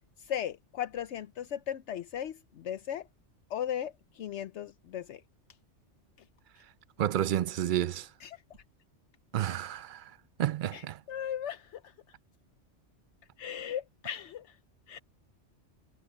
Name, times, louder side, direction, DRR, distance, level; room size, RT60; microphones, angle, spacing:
voice 1, 0.2-3.1 3.5-5.2 8.2-8.4 10.7-11.9 13.4-14.6 14.9-15.0, left 10 dB, 75° left, 1.0 m, -37 dB
voice 2, 7.0-8.1 9.3-10.1 10.4-11.0, right 11 dB, 55° right, 0.6 m, -30 dB
omnidirectional pair, 1.2 m